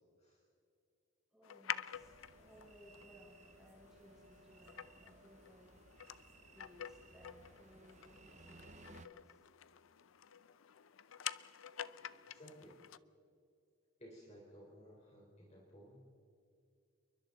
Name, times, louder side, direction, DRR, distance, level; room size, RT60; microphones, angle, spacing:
voice 1, 1.3-5.7 6.5-9.4 11.6-12.2, equal, ahead, -5 dB, 7.1 m, -63 dB
sound 1, 1.4-13.0, left 10 dB, 85° left, 0.5 m, -49 dB
sound 2, 1.9-9.1, right 3 dB, 35° right, 0.8 m, -61 dB
voice 2, 12.3-12.8 14.0-16.1, equal, 35° left, -3 dB, 4.0 m, -57 dB
28.5 x 23.0 x 4.0 m, 2.4 s
head